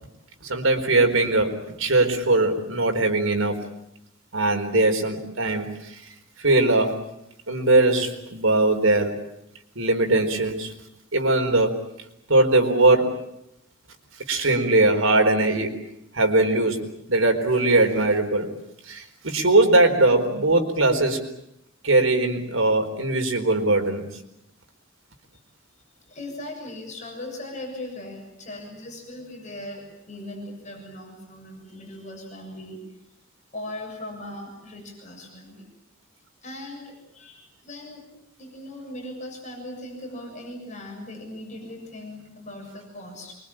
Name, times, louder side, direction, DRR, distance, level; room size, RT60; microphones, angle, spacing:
voice 1, 0.4-3.6 4.3-6.0 6.4-7.0 7.5-9.2 9.8-10.7 11.1-11.8 12.3-13.2 14.3-15.8 16.1-18.5 18.8-21.2 21.8-24.0, right 2 dB, 85° right, 4 dB, 4.4 m, -20 dB
voice 2, 26.1-32.8 33.5-35.7 36.4-38.1 38.4-43.3, left 1 dB, 35° left, 2 dB, 7.0 m, -39 dB
25.5 x 23.5 x 8.9 m, 0.81 s
head